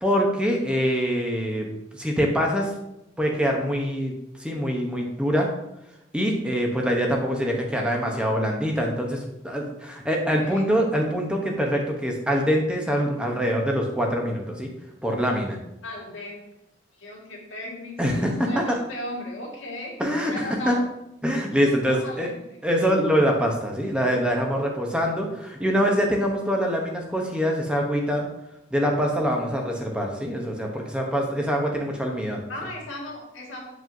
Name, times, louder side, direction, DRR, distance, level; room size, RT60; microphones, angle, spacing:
voice 1, 0.0-1.7 1.9-2.7 3.2-5.5 6.1-14.7 15.0-15.6 18.0-18.8 20.0-20.8 21.2-22.3 22.6-28.2 28.7-32.4, equal, 5° right, 1 dB, 0.8 m, -24 dB
voice 2, 15.8-16.4 17.0-20.0 20.3-20.8 21.6-22.4 22.6-22.7 32.5-33.7, left 1 dB, 75° left, -3 dB, 1.8 m, -36 dB
7.5 x 4.9 x 2.6 m, 0.87 s
head